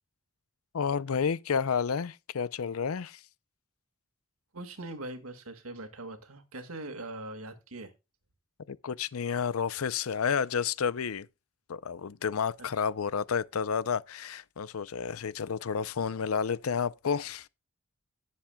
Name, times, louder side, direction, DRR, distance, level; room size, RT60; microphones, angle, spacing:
voice 1, 0.7-3.2 8.7-11.3 11.7-17.5, left 6 dB, 85° left, 0.5 m, -30 dB
voice 2, 4.5-7.9 12.6-12.7, right 2 dB, 90° right, 1.9 m, -41 dB
18.0 x 7.3 x 2.3 m
head